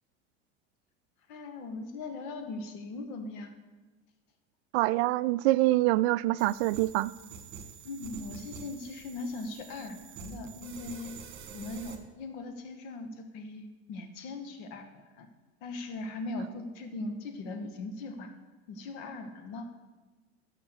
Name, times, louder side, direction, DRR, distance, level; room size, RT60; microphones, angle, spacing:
voice 1, 1.3-3.5 7.9-11.2 11.5-14.8 15.2-15.3 15.6-18.3 18.7-19.7, left 2 dB, 60° left, 1.8 m, -39 dB
voice 2, 4.7-7.1, right 18 dB, 65° right, 0.5 m, -25 dB
sound 1, 6.4-12.0, right 6 dB, 35° right, 1.9 m, -47 dB
13.0 x 5.8 x 6.8 m
hypercardioid pair, 95°, 35 cm